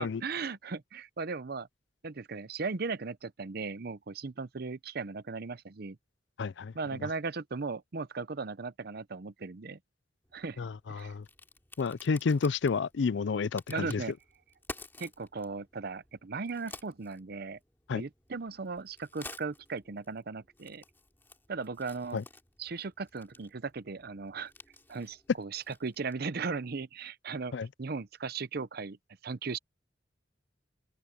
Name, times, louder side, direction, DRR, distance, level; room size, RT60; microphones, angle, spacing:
voice 1, 0.0-1.7 2.0-6.0 6.7-9.8 10.3-11.1 13.7-14.1 15.0-17.6 17.9-20.8 21.5-22.2 22.6-24.5 24.9-27.5 27.8-29.0 29.2-29.6, right 4 dB, 55° right, 0.7 m, -37 dB
voice 2, 6.4-6.7 10.6-11.2 11.8-14.0 17.9-18.0 22.1-22.2 27.5-27.7, left 5 dB, 70° left, 0.4 m, -30 dB
Crack, 10.2-26.3, left 2 dB, 10° left, 3.0 m, -52 dB
open air
head